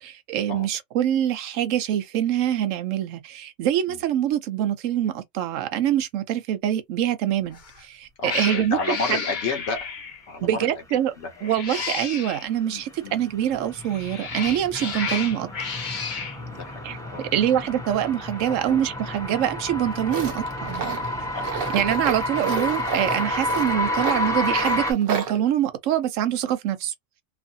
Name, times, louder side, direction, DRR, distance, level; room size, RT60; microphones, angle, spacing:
voice 1, 0.0-9.2 10.4-11.1 11.4-15.5 16.8-21.0 21.7-26.9, right 11 dB, 75° right, 1.0 m, -25 dB
Cat, 7.5-7.8 8.2-10.3 11.4-12.5 13.8-16.4, left 5 dB, 40° left, 0.9 m, -32 dB
voice 2, 8.2-9.9 10.3-11.3 12.7-13.1 14.8-14.9 16.4-17.8 18.7-18.8 20.1-20.2 21.3-21.5, left 4 dB, 60° left, 1.1 m, -32 dB
sound 1, 12.1-24.9, left 1 dB, 5° left, 0.8 m, -30 dB
Tools, 20.1-25.4, right 6 dB, 50° right, 0.9 m, -32 dB
2.9 x 2.5 x 2.6 m
omnidirectional pair, 1.3 m